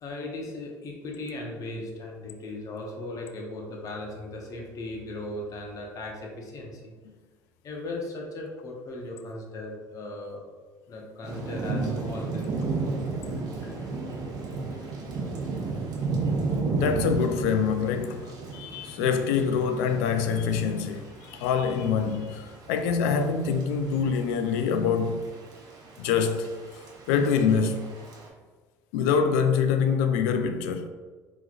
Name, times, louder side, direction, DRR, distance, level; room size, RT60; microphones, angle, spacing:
voice 1, 0.0-6.9 7.6-10.4 10.9-12.5 13.6-13.9 14.7-14.9, left 2 dB, 45° left, 0.8 m, -37 dB
Thunder / Rain, 11.2-28.3, right 3 dB, 50° right, 0.8 m, -33 dB
voice 2, 16.7-25.3 26.0-26.5 27.1-27.9 28.9-30.9, left 6 dB, 80° left, 0.3 m, -25 dB
3.8 x 3.0 x 2.4 m
supercardioid pair, 85°, 8 cm